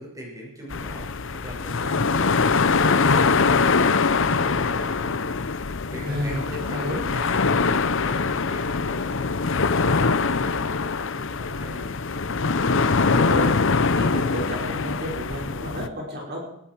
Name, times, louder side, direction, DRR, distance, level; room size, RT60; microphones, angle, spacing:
voice 1, 0.0-5.2 5.5-9.4 9.7-11.9, equal, 15° right, -2 dB, 6.3 m, -41 dB
sound 1, 0.7-15.9, left 4 dB, 65° left, 0.8 m, -23 dB
voice 2, 6.0-6.4 6.7-7.0 13.0-16.4, equal, 55° right, -2 dB, 5.6 m, -32 dB
21.0 x 13.5 x 4.7 m, 0.79 s
head